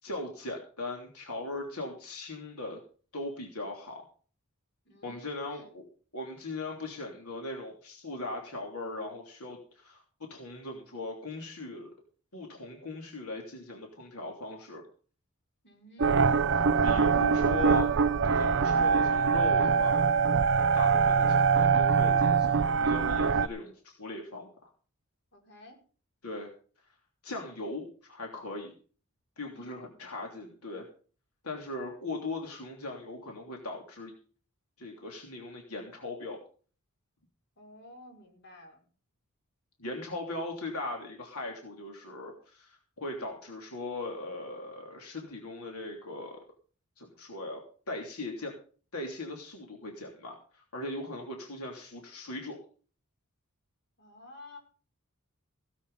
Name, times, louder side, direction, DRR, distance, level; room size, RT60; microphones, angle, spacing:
voice 1, 0.0-2.8 3.1-4.1 5.0-5.8 6.1-10.0 10.3-11.9 12.3-14.8 16.8-18.0 18.2-20.0 20.7-24.7 26.2-26.5 27.2-28.7 29.4-30.8 31.4-34.1 34.8-36.4 39.8-46.4 47.0-47.6 47.9-48.5 48.9-52.6, left 2 dB, 80° left, 1 dB, 3.1 m, -39 dB
voice 2, 4.9-5.7 15.6-16.2 25.3-25.8 29.5-29.9 37.6-38.8 54.0-54.6, left 1 dB, 55° left, 2 dB, 5.2 m, -52 dB
sound 1, 16.0-23.5, right 5 dB, 55° right, 0.6 m, -24 dB
17.5 x 8.4 x 5.5 m, 0.41 s
head